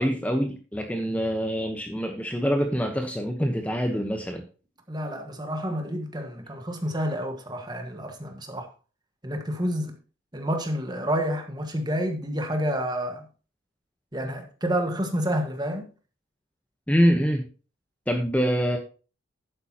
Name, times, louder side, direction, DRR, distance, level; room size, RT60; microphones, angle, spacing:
voice 1, 0.0-4.4 16.9-17.4 18.1-18.8, equal, 5° left, 1.0 m, -25 dB
voice 2, 4.9-8.7 9.2-9.9 10.3-13.2 14.1-15.9, equal, 20° right, 1.6 m, -29 dB
11.5 x 9.1 x 2.9 m
head